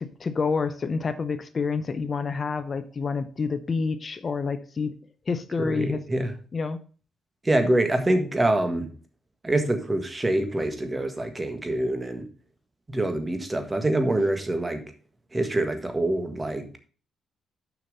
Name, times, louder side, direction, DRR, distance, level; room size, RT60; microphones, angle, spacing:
voice 1, 0.0-4.9 5.3-6.0 6.5-6.8, left 4 dB, 40° left, 11 dB, 0.6 m, -28 dB
voice 2, 5.6-6.3 7.4-8.9 9.4-12.2 12.9-14.8 15.3-16.8, right 1 dB, 20° right, 7 dB, 1.5 m, -25 dB
7.0 x 5.8 x 5.3 m, 0.40 s
cardioid pair, 90°, 0 cm